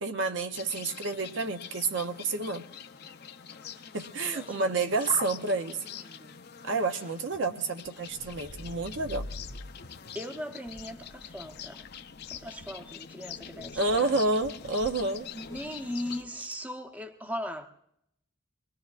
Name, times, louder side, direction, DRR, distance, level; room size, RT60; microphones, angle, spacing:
voice 1, 0.0-2.6 3.9-5.8 6.6-9.3 13.8-15.3, right 3 dB, 60° right, 0.7 m, -29 dB
sound 1, 0.5-16.2, left 8 dB, 50° left, 0.6 m, -44 dB
voice 2, 4.2-5.2 5.5-5.8 6.0-6.4 10.1-11.9 12.3-14.2 15.3-17.7, equal, 5° right, 0.8 m, -39 dB
sound 2, 7.3-16.4, left 1 dB, 65° left, 1.1 m, -47 dB
24.5 x 20.5 x 2.4 m
head